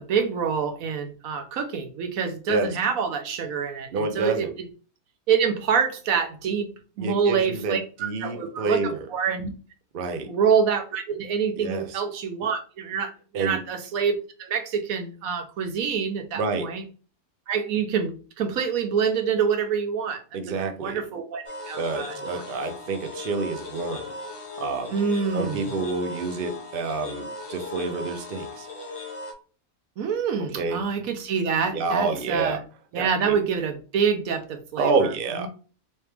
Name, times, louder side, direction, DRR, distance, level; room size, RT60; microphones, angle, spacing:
voice 1, 0.1-4.7 5.3-6.7 7.0-9.5 10.3-16.8 17.5-20.2 20.5-22.5 24.9-25.7 30.0-32.6 32.9-35.5, right 6 dB, 75° right, 7 dB, 1.1 m, -26 dB
voice 2, 3.9-4.5 7.0-9.0 9.9-10.3 11.6-11.8 13.3-13.6 16.3-16.7 20.3-21.0 21.7-24.1 24.6-24.9 25.3-28.7 30.4-30.8 31.7-32.6 33.0-33.4 34.8-35.5, right 4 dB, 55° right, 6 dB, 0.6 m, -28 dB
sound 1, 21.4-29.3, left 3 dB, 55° left, 0.3 m, -37 dB
3.1 x 2.9 x 3.3 m, 0.38 s
omnidirectional pair, 1.5 m